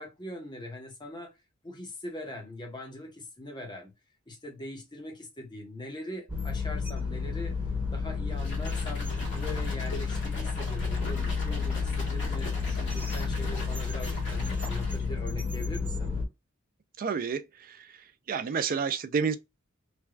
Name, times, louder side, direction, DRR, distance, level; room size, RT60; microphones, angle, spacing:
voice 1, 0.0-1.3 1.6-3.9 4.3-7.6 7.9-16.1, left 1 dB, 20° left, 0.9 m, -42 dB
sound 1, 6.3-16.3, left 4 dB, 10° right, 1.1 m, -31 dB
sound 2, 8.3-15.2, left 1 dB, 60° left, 1.6 m, -42 dB
voice 2, 17.0-17.4 17.7-17.8 18.3-19.4, right 6 dB, 45° right, 0.4 m, -29 dB
3.2 x 2.2 x 2.4 m
head